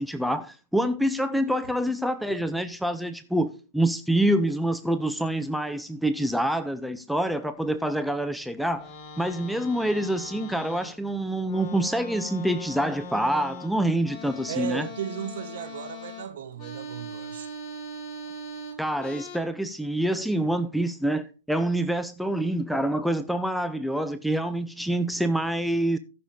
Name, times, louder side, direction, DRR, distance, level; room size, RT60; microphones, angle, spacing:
voice 1, 0.0-8.9 9.2-14.9 18.8-26.0, right 1 dB, ahead, 0.6 m, -26 dB
sound 1, 8.6-11.1 11.4-19.4, left 1 dB, 25° left, 3.2 m, -40 dB
voice 2, 14.5-17.5, right 9 dB, 55° right, 1.6 m, -35 dB
14.0 x 7.0 x 3.7 m
figure-of-eight pair, 120°, 0 cm